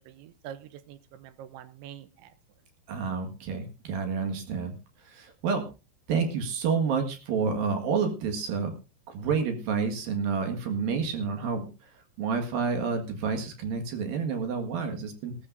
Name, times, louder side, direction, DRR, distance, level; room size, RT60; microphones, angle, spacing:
voice 1, 0.0-2.3, right 10 dB, 80° right, 12 dB, 3.1 m, -45 dB
voice 2, 2.9-4.7 5.0-5.7 6.1-8.7 9.1-11.9 12.2-15.3, right 5 dB, 60° right, 5 dB, 3.2 m, -29 dB
19.0 x 13.5 x 2.6 m, 0.30 s
omnidirectional pair, 5.4 m